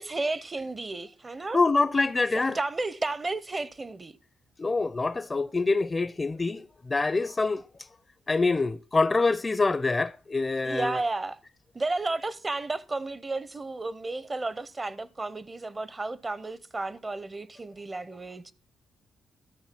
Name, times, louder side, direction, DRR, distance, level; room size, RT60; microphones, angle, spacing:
voice 1, 0.0-1.6 2.3-4.1 10.6-11.4 11.7-18.5, right 2 dB, 30° right, 0.6 m, -32 dB
voice 2, 1.5-2.6 4.6-7.6 8.3-11.0, left 3 dB, 25° left, 0.5 m, -25 dB
12.0 x 6.5 x 5.9 m
cardioid pair, 80°, 0 cm